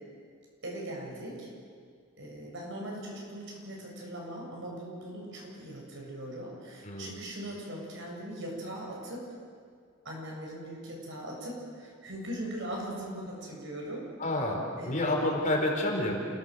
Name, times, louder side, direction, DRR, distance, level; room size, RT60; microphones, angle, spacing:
voice 1, 0.6-1.5 2.2-9.2 10.0-14.1 14.7-15.1, right 1 dB, 65° right, -2 dB, 7.5 m, -40 dB
voice 2, 14.2-14.6 14.9-16.2, left 1 dB, 40° left, 0 dB, 4.5 m, -28 dB
28.5 x 17.5 x 8.1 m, 2.1 s
head